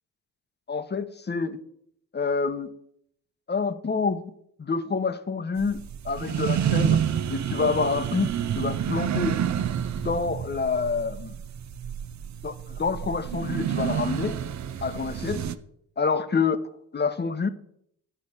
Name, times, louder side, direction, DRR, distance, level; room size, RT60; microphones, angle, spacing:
voice 1, 0.7-1.6 2.1-2.7 3.5-4.3 4.6-7.0 7.3-8.3 8.5-9.4 10.0-11.4 12.4-14.4 14.8-15.5 16.0-16.6 16.9-17.5, left 4 dB, 25° left, 11 dB, 0.9 m, -27 dB
sound 1, 5.6-15.5, right 9 dB, 45° right, 0.6 m, -29 dB
9.9 x 4.1 x 6.6 m, 0.72 s
supercardioid pair, 55°, 38 cm